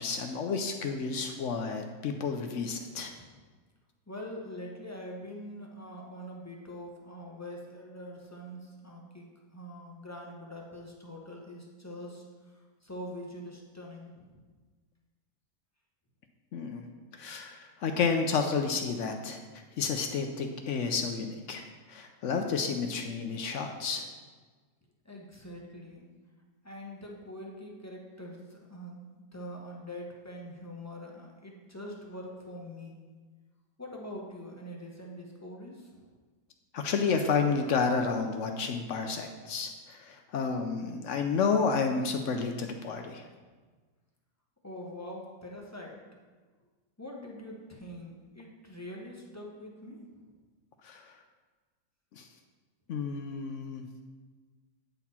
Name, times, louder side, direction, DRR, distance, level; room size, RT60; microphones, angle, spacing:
voice 1, 0.0-3.1 16.5-16.9 17.2-21.6 21.9-24.1 36.7-43.2 50.8-51.0 52.2-52.3 52.9-53.8, left 5 dB, 65° left, 5 dB, 0.8 m, -31 dB
voice 2, 4.1-9.2 9.5-12.2 12.5-14.4 25.0-26.1 26.6-33.0 33.8-36.1 44.6-46.0 47.0-50.2, left 1 dB, 15° left, -1 dB, 0.7 m, -44 dB
9.1 x 4.2 x 4.2 m, 1.4 s
omnidirectional pair, 1.6 m